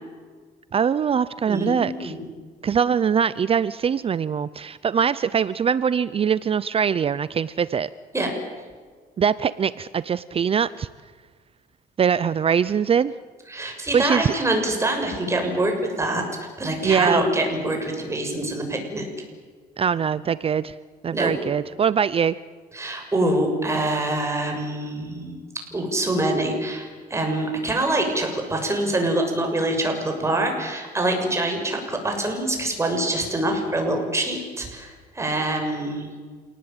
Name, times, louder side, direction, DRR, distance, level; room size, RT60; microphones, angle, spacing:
voice 1, 0.7-2.1 2.6-7.9 9.2-10.9 12.0-13.1 13.9-14.3 16.8-17.2 19.8-20.7 21.0-22.4, right 7 dB, 35° right, 17 dB, 0.6 m, -22 dB
voice 2, 1.5-2.2 8.1-8.3 13.5-19.2 21.1-21.3 22.7-25.4 25.7-36.1, right 1 dB, 15° right, 3 dB, 6.8 m, -25 dB
28.0 x 19.0 x 9.0 m, 1.6 s
cardioid pair, 110°, 17 cm